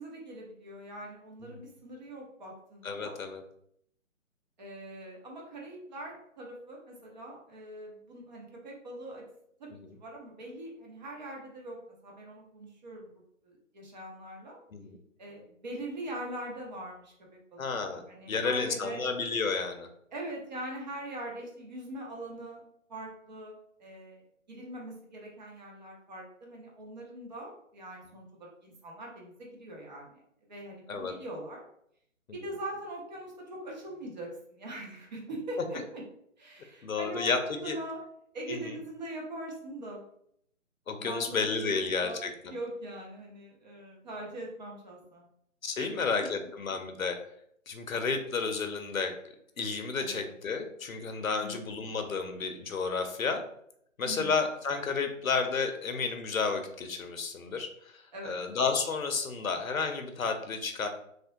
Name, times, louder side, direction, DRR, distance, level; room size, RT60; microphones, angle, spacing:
voice 1, 0.0-3.2 4.6-9.2 9.6-11.8 12.0-13.1 13.4-14.6 15.2-19.0 20.1-22.6 22.9-24.2 24.5-30.2 30.5-31.6 32.3-36.0 36.4-38.0 38.3-40.0 41.0-45.3 45.8-45.9 46.1-46.3 50.0-50.3 51.3-51.7 54.0-54.3 58.1-58.4, right 1 dB, 35° right, -2 dB, 0.9 m, -42 dB
voice 2, 2.8-3.4 9.8-9.9 14.7-15.0 17.6-19.9 30.9-31.1 36.8-37.4 37.6-37.8 38.5-38.7 40.9-42.3 45.6-47.2 47.7-49.1 49.6-53.4 54.0-60.9, left 5 dB, 90° left, 6 dB, 0.7 m, -31 dB
3.2 x 2.5 x 2.8 m, 0.71 s
figure-of-eight pair, 150°, 40 cm